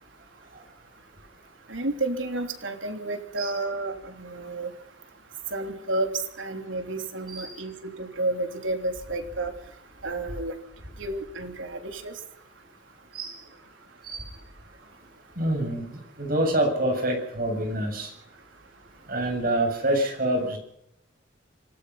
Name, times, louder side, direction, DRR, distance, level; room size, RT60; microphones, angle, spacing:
voice 1, 1.7-4.7 5.5-9.5 10.0-10.5 11.0-12.1, right 2 dB, 90° right, 5 dB, 3.4 m, -31 dB
voice 2, 15.4-15.9 16.2-18.1 19.1-20.6, right 1 dB, 50° right, 3 dB, 7.5 m, -26 dB
26.0 x 18.5 x 5.7 m, 0.76 s
head